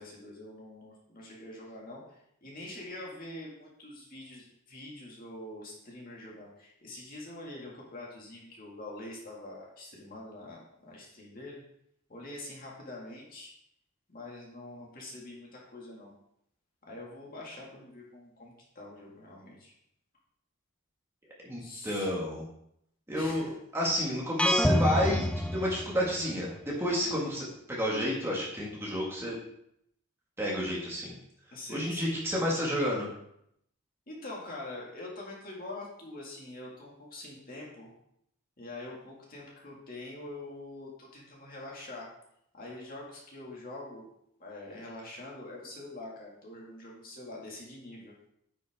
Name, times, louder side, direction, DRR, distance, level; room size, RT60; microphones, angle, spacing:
voice 1, 0.0-11.6 12.1-13.5 14.1-16.1 16.9-19.7 21.6-22.1 23.1-23.5 27.0-27.2 31.5-32.2 34.1-37.9 38.6-42.1 42.5-44.1 44.4-48.1, left 2 dB, 40° left, -3 dB, 2.1 m, -44 dB
voice 2, 21.4-22.5 23.1-29.4 30.4-31.1 31.7-33.1, equal, 10° right, -4 dB, 1.8 m, -31 dB
sound 1, 24.4-26.4, equal, 5° left, 0.3 m, -27 dB
9.2 x 6.1 x 3.6 m, 0.73 s
head